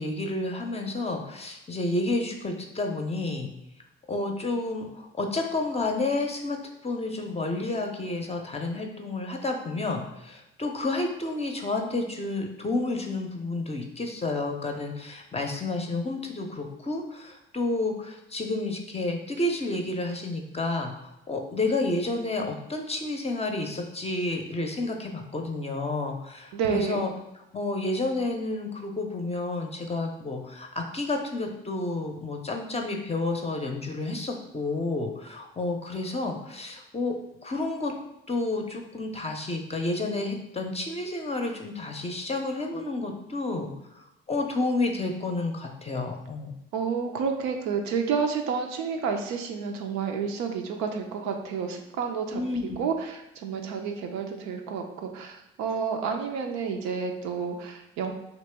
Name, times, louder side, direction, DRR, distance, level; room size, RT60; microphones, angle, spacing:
voice 1, 0.0-3.5 4.1-27.1 27.5-37.1 37.4-37.9 38.3-46.5 52.3-52.9, left 2 dB, 20° left, 3 dB, 0.6 m, -30 dB
voice 2, 26.5-27.1 46.7-58.1, right 6 dB, 65° right, 4 dB, 0.5 m, -30 dB
3.0 x 2.8 x 3.3 m, 0.88 s
hypercardioid pair, 40°, 29 cm